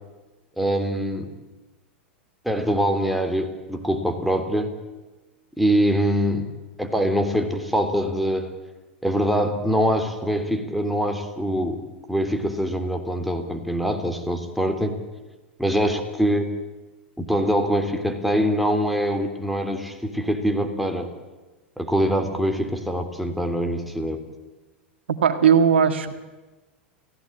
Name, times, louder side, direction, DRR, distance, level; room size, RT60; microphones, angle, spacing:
voice 1, 0.6-1.3 2.4-4.7 5.6-6.5 6.8-8.5 9.0-15.0 15.6-16.5 17.2-21.1 21.8-24.2, equal, ahead, 4 dB, 3.3 m, -24 dB
voice 2, 25.1-26.1, right 7 dB, 75° right, 9 dB, 1.8 m, -18 dB
29.0 x 16.5 x 9.0 m, 1.2 s
hypercardioid pair, 95°, 6 cm